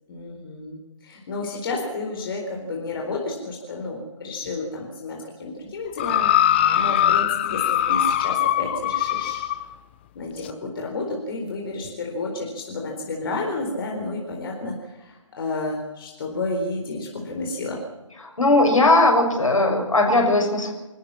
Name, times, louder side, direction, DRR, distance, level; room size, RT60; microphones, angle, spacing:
voice 1, 0.1-9.5 10.1-17.8, left 2 dB, 40° left, 0 dB, 4.2 m, -31 dB
sound 1, 6.0-9.6 10.4-10.5, left 11 dB, 20° left, 0.6 m, -21 dB
voice 2, 18.4-20.7, left 2 dB, 70° left, 2 dB, 6.9 m, -18 dB
26.5 x 14.0 x 7.4 m, 1.0 s
figure-of-eight pair, 145°, 17 cm